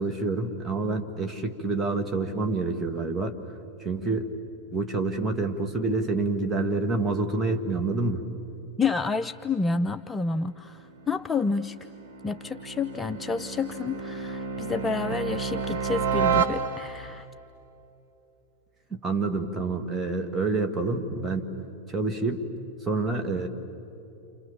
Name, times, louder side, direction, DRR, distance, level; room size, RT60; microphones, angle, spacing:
voice 1, 0.0-3.4 3.8-4.3 4.7-8.2 18.9-21.5 21.9-22.4 22.8-23.5, right 3 dB, 10° right, 2 dB, 2.4 m, -27 dB
voice 2, 8.8-11.8 12.2-17.3, left 4 dB, 15° left, 11 dB, 0.5 m, -29 dB
sound 1, 10.8-17.2, right 6 dB, 70° right, 1.7 m, -31 dB
29.0 x 28.5 x 7.2 m, 3.0 s
figure-of-eight pair, 90°, 0 cm